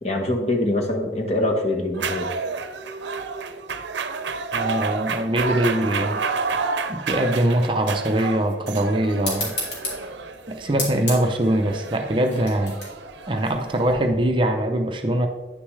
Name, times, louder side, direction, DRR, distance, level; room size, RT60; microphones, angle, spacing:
voice 1, 0.0-2.3, left 1 dB, 35° left, 2 dB, 1.2 m, -24 dB
sound 1, 1.9-13.9, right 4 dB, 70° right, 0.6 m, -30 dB
voice 2, 4.5-6.2 6.9-9.5 10.5-12.8 13.3-15.3, right 1 dB, 25° right, 4 dB, 0.5 m, -22 dB
sound 2, 9.2-14.3, left 1 dB, 65° left, 2.8 m, -33 dB
9.7 x 6.7 x 3.2 m, 1.2 s
head